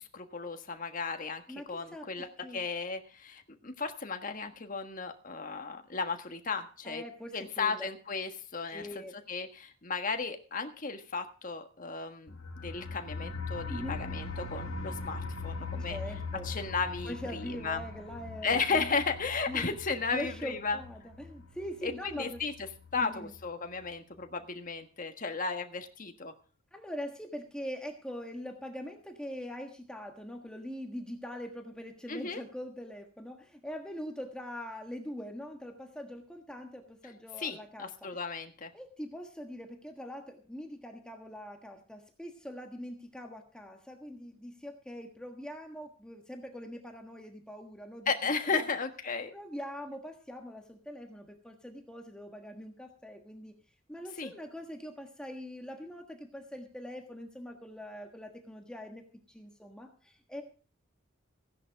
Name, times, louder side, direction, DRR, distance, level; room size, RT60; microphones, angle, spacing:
voice 1, 0.0-7.0 7.3-8.9 9.3-12.4 12.6-16.0 16.4-17.8 18.4-20.8 21.8-22.5 22.9-26.3 32.1-32.4 37.4-38.7 48.1-49.3 54.2-54.3, left 4 dB, 40° left, 6 dB, 1.5 m, -34 dB
voice 2, 1.5-2.6 6.8-7.9 8.7-9.1 13.7-14.0 15.8-16.5 17.0-18.9 19.5-19.7 20.1-22.4 22.9-23.3 26.7-37.9 38.7-48.1 48.4-48.7 49.3-53.5 53.9-60.4, equal, 5° left, 3 dB, 1.4 m, -43 dB
sound 1, 12.3-23.0 23.3-23.4 23.7-23.8, left 3 dB, 90° left, 1.6 m, -41 dB
16.0 x 10.5 x 4.6 m, 0.38 s
head